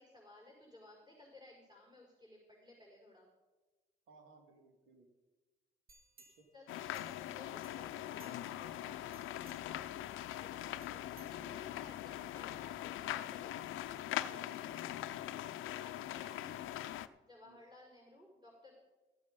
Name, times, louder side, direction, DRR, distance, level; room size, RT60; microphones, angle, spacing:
voice 1, 0.0-3.3 6.5-13.7 14.3-14.9 15.6-16.6 17.3-18.7, left 2 dB, 20° right, -4 dB, 5.1 m, -58 dB
voice 2, 4.1-5.1 6.3-6.5 12.4-12.6 14.3-14.9 17.4-17.6, right 3 dB, 85° right, 3 dB, 2.4 m, -61 dB
sound 1, 5.9-7.4 7.6-8.7 9.1-9.9 10.8-11.9 12.4-12.5, right 4 dB, 50° right, 1.3 m, -64 dB
sound 2, 6.7-17.1, left 13 dB, 85° left, 0.5 m, -42 dB
14.5 x 8.7 x 5.3 m, 1.2 s
cardioid pair, 90°, 20 cm